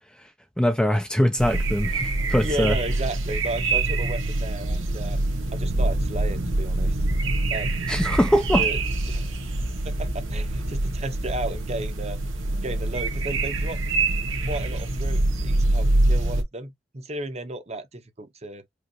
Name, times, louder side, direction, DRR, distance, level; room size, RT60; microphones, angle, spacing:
voice 1, 0.6-2.8 7.9-8.6, equal, 5° left, 0.4 m, -22 dB
sound 1, 1.4-16.4, right 2 dB, 75° right, 1.3 m, -25 dB
voice 2, 2.4-5.2 5.5-7.0 7.5-7.9 8.5-8.8 9.1-12.2 12.6-13.8 14.5-18.6, right 2 dB, 30° right, 0.7 m, -34 dB
4.9 x 2.4 x 2.7 m
head